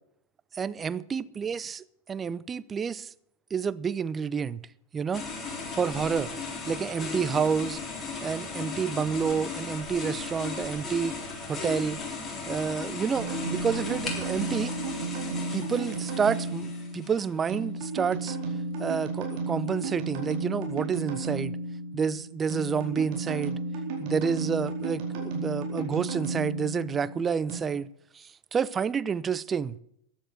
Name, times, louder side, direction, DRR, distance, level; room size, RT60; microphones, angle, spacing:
voice 1, 0.5-1.8 2.1-3.1 3.5-4.6 4.9-5.3 5.7-6.3 6.7-7.8 8.2-11.2 11.5-12.0 12.5-14.7 15.5-18.4 18.8-21.6 21.9-23.6 24.0-27.9 28.1-29.7, right 6 dB, 20° right, 0.5 m, -29 dB
sound 1, 5.1-17.4, left 4 dB, 20° left, 3.6 m, -36 dB
sound 2, 13.1-27.6, right 3 dB, 45° right, 4.2 m, -33 dB
14.5 x 10.0 x 6.5 m
figure-of-eight pair, 90°, 0 cm